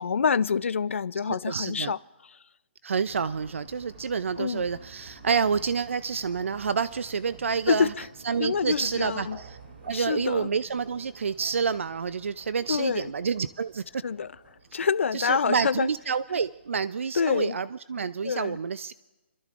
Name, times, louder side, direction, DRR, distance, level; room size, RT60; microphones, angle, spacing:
voice 1, 0.0-2.0 4.4-4.6 7.7-8.1 8.4-9.4 9.9-10.5 12.7-13.1 14.0-14.3 14.7-15.9 17.2-17.6 18.2-18.6, left 6 dB, 90° left, 0.4 m, -26 dB
voice 2, 1.3-1.9 2.8-7.9 8.2-9.6 9.9-13.8 15.1-18.9, right 6 dB, 90° right, 0.5 m, -28 dB
sound 1, 3.0-16.7, right 3 dB, 55° right, 3.7 m, -50 dB
29.5 x 13.0 x 2.5 m
hypercardioid pair, 170°, 7 cm